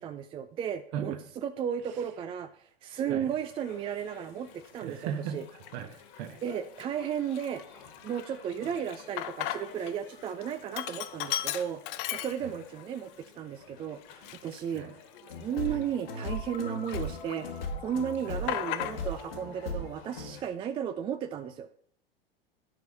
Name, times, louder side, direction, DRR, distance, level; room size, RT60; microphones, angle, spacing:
voice 1, 0.0-5.5 6.4-11.8 12.1-14.9 15.4-21.7, right 8 dB, 20° right, 9 dB, 0.4 m, -34 dB
sound 1, 3.2-20.4, left 7 dB, 50° left, 1.9 m, -54 dB
Sink (filling or washing), 4.7-4.8 5.5-6.0 6.4-6.5 6.8-9.9 10.2-12.8 13.2-13.3 14.0-16.6 16.9-17.7 17.9-19.3, left 13 dB, 35° left, 0.6 m, -37 dB
voice 2, 4.8-5.4 5.7-6.4 12.4-12.5 14.7-14.9 18.3-18.4, right 8 dB, 50° right, 8 dB, 1.2 m, -37 dB
sound 2, 15.3-20.3, left 2 dB, 70° left, 1.9 m, -37 dB
11.0 x 4.6 x 5.4 m, 0.63 s
figure-of-eight pair, 90°, 30 cm